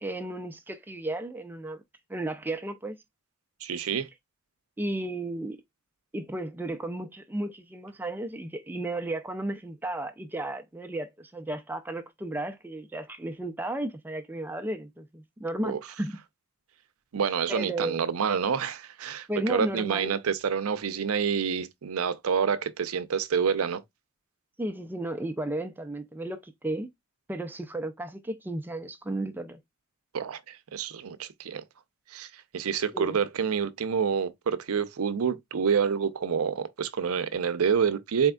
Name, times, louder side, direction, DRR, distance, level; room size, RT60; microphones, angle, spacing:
voice 1, 0.0-1.8 2.1-3.0 4.8-5.6 6.1-16.2 17.5-18.1 19.3-20.2 24.6-26.9 27.3-29.6 32.9-33.2, right 1 dB, 10° right, 0.3 m, -34 dB
voice 2, 3.6-4.1 15.6-15.8 17.1-23.8 30.1-31.6 32.1-38.3, right 6 dB, 75° right, 0.5 m, -28 dB
4.2 x 3.5 x 2.2 m
head